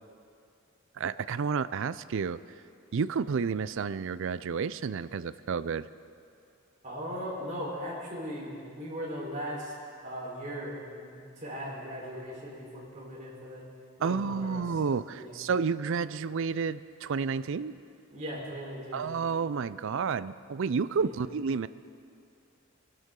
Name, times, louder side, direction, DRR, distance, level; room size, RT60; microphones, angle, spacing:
voice 1, 1.0-2.4 2.9-5.9 14.0-17.8 18.9-21.7, right 5 dB, 60° right, 16 dB, 0.4 m, -30 dB
voice 2, 6.8-9.7 10.0-13.6 14.0-14.8 15.1-15.4 18.1-19.1 21.0-21.2, equal, 35° right, -5 dB, 4.2 m, -38 dB
25.0 x 12.0 x 3.8 m, 2.5 s
head